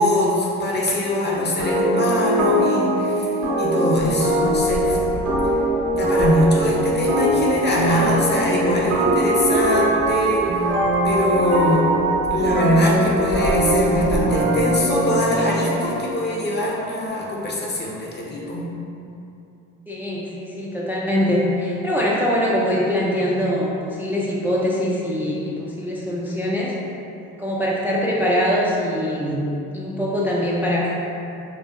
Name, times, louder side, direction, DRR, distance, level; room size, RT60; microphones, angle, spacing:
voice 1, 0.0-3.3 3.6-5.0 5.9-10.7 11.0-12.0 12.3-18.7, left 1 dB, 30° left, -4 dB, 0.8 m, -22 dB
sound 1, 1.6-16.2, right 1 dB, 70° right, 0.9 m, -21 dB
Bird vocalization bird call bird song, 3.9-14.2, left 1 dB, 75° left, 1.3 m, -35 dB
voice 2, 19.9-26.7 27.4-29.5 29.7-30.9, equal, 5° right, -5 dB, 0.4 m, -23 dB
4.2 x 2.1 x 2.3 m, 2.7 s
hypercardioid pair, 55°, 37 cm